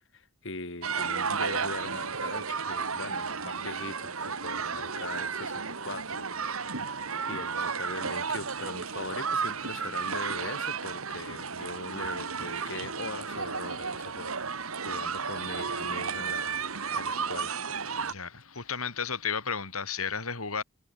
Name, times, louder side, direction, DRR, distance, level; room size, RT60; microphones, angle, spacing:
voice 1, 0.1-6.8 7.3-14.4 14.8-17.6, left 2 dB, 60° left, 4.4 m, -41 dB
sound 1, 0.8-18.1, right 5 dB, 80° right, 2.3 m, -33 dB
voice 2, 18.1-20.6, left 6 dB, 85° left, 5.5 m, -33 dB
head